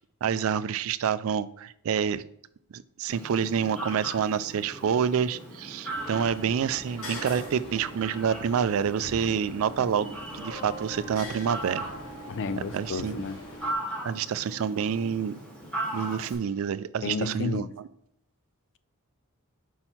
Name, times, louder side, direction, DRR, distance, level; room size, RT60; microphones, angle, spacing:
voice 1, 0.2-2.2 2.7-11.9 12.7-13.2 14.0-15.3 15.9-17.9, right 7 dB, 65° right, 0.4 m, -28 dB
Fowl, 3.1-16.3, right 1 dB, 5° left, 2.4 m, -39 dB
sound 1, 5.9-13.7, equal, 75° left, 2.7 m, -42 dB
voice 2, 12.3-13.4 17.0-17.7, left 4 dB, 55° left, 0.4 m, -31 dB
5.5 x 4.4 x 5.8 m
head